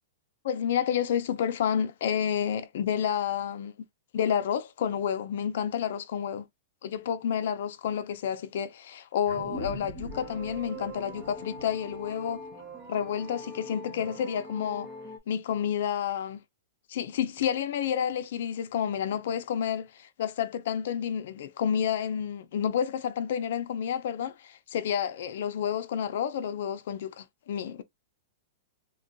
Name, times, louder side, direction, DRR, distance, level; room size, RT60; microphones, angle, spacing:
voice 1, 0.4-3.7 4.1-6.5 6.8-12.4 12.9-14.9 15.3-16.4 16.9-27.8, left 8 dB, 55° left, 0.5 m, -30 dB
sound 1, 9.3-14.1, right 1 dB, 55° right, 1.1 m, -44 dB
sound 2, 10.1-15.2, equal, 20° right, 0.6 m, -43 dB
3.7 x 2.2 x 2.6 m
supercardioid pair, 175°, 0 cm